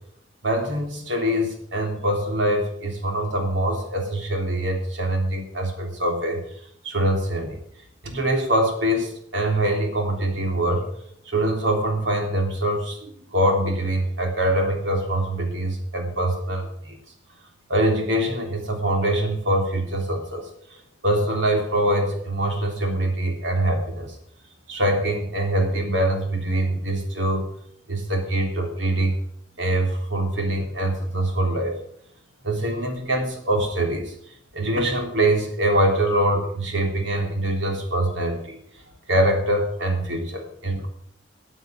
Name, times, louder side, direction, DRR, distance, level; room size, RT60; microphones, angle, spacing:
voice 1, 0.4-6.4 6.8-7.6 8.0-10.9 11.3-17.0 17.7-24.2 24.7-27.5 27.9-29.2 29.6-31.8 32.4-34.1 34.5-38.6 39.1-40.9, right 1 dB, 85° right, 3 dB, 3.5 m, -24 dB
14.0 x 8.2 x 7.6 m, 0.67 s
head